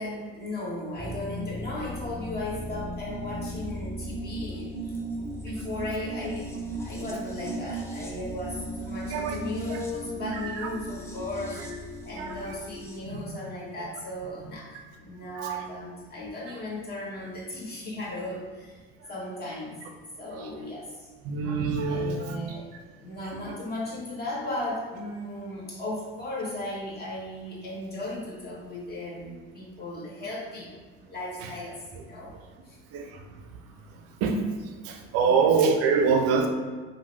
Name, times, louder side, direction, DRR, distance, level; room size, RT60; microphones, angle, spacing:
voice 1, 0.0-5.0 5.4-6.5 6.8-11.6 12.0-18.8 19.1-19.8 20.2-21.1 21.9-22.7 23.0-32.3 32.6-32.8 35.2-35.5, left 1 dB, 30° left, -6 dB, 1.2 m, -36 dB
sound 1, 1.0-13.0, right 1 dB, 10° left, 0.5 m, -36 dB
voice 2, 21.3-22.3 32.9-33.0 34.2-34.4 34.8-36.5, right 5 dB, 50° right, 4 dB, 0.4 m, -24 dB
3.0 x 2.1 x 3.0 m, 1.4 s
figure-of-eight pair, 60°, 30 cm